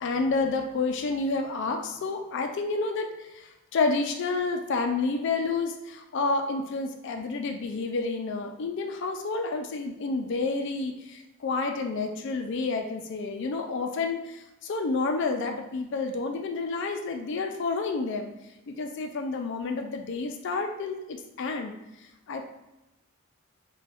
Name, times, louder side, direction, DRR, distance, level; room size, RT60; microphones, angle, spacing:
voice 1, 0.0-3.1 3.7-14.2 14.6-18.3 18.7-21.7 22.3-22.4, left 3 dB, 55° left, 4 dB, 0.3 m, -29 dB
2.5 x 2.2 x 3.3 m, 0.98 s
head